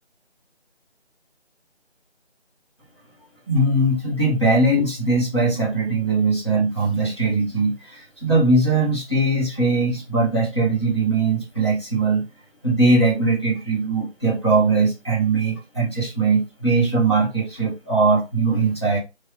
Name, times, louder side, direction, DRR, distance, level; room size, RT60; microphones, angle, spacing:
voice 1, 3.5-12.2 12.6-19.0, right 3 dB, 25° left, 1.0 m, -20 dB
4.5 x 2.3 x 2.8 m
figure-of-eight pair, 180°, 34 cm